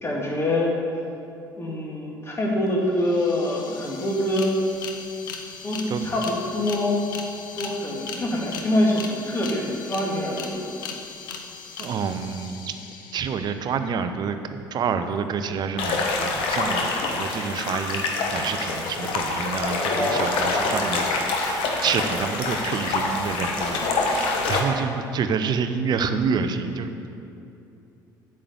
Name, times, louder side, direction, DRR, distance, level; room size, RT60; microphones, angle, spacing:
voice 1, 0.0-0.7 1.6-4.6 5.6-7.0 7.5-10.6 19.8-20.3, left 1 dB, 25° left, -2 dB, 2.3 m, -25 dB
sound 1, 2.7-2.8 2.9-13.8, left 6 dB, 75° left, 0.7 m, -38 dB
voice 2, 11.8-12.7 13.1-18.0 18.3-23.8 24.0-27.1, right 6 dB, 40° right, 9 dB, 0.7 m, -28 dB
sound 2, 15.8-24.6, left 3 dB, 55° left, 1.2 m, -26 dB
8.6 x 6.3 x 7.1 m, 2.7 s
figure-of-eight pair, 60°, 11 cm